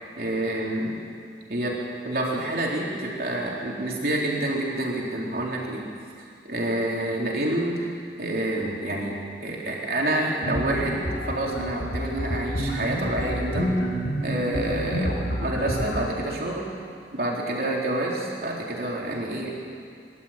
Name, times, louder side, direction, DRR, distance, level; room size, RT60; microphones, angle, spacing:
voice 1, 0.2-1.0 1.5-5.8 6.2-7.9 8.2-13.7 14.2-16.7 17.1-19.5, right 1 dB, 55° right, -3 dB, 3.9 m, -28 dB
sound 1, 10.4-16.1, equal, 75° left, 6.2 m, -29 dB
23.5 x 12.5 x 9.0 m, 2.3 s
head